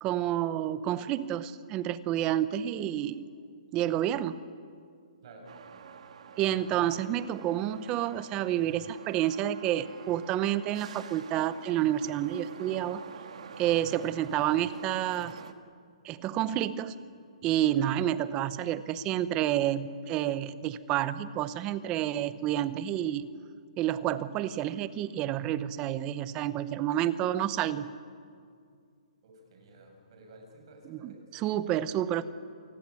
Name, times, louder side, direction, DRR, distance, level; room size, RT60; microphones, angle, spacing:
voice 1, 0.0-3.2 3.7-4.4 6.4-13.0 13.6-15.4 16.0-17.0 17.4-23.3 23.8-27.9 30.9-32.2, right 12 dB, 20° right, 15 dB, 0.8 m, -29 dB
voice 2, 5.2-5.8 29.2-31.4 32.1-32.2, right 2 dB, 45° right, 2 dB, 7.1 m, -53 dB
sound 1, 5.5-15.5, right 7 dB, 65° right, 1.8 m, -48 dB
28.0 x 20.0 x 8.4 m, 2.2 s
hypercardioid pair, 165°, 4 cm